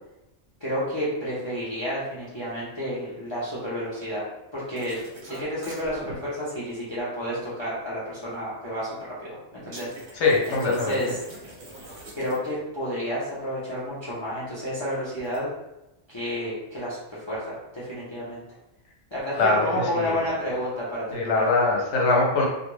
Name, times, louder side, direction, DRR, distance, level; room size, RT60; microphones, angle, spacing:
voice 1, 0.6-4.2 4.5-5.0 5.3-10.2 10.5-11.1 12.2-15.5 16.1-18.4 19.1-21.4, equal, 30° left, -9 dB, 0.6 m, -30 dB
sound 1, 4.8-6.1 9.7-12.6 15.2-15.4, right 1 dB, 45° right, 0.7 m, -42 dB
voice 2, 10.1-11.0 19.4-20.2 21.1-22.5, left 3 dB, 75° left, -2 dB, 1.0 m, -22 dB
2.4 x 2.2 x 3.1 m, 0.95 s
omnidirectional pair, 1.2 m